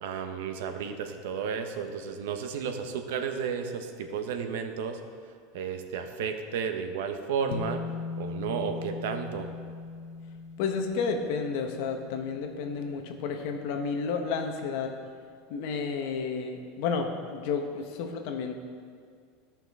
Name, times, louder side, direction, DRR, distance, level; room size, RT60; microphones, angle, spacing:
voice 1, 0.0-5.0 5.5-7.8 8.2-9.5, right 6 dB, 75° right, 6 dB, 0.8 m, -33 dB
sound 1, 7.5-14.1, left 4 dB, 85° left, 0.8 m, -40 dB
voice 2, 10.6-14.9 15.5-18.5, left 5 dB, 55° left, 4 dB, 0.9 m, -31 dB
13.5 x 5.8 x 3.6 m, 2.1 s
supercardioid pair, 165°, 0 cm